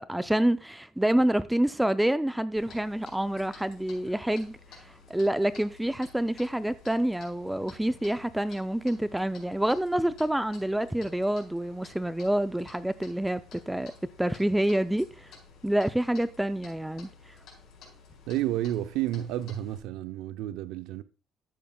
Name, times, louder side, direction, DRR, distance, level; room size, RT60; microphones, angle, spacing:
voice 1, 0.0-13.9 14.2-15.3 15.6-17.1, right 1 dB, 5° right, 0.3 m, -27 dB
Clock, 2.6-19.8, left 5 dB, 55° left, 4.5 m, -53 dB
voice 2, 18.3-21.0, right 13 dB, 90° right, 0.6 m, -31 dB
13.0 x 9.0 x 2.3 m
cardioid pair, 150°, 0 cm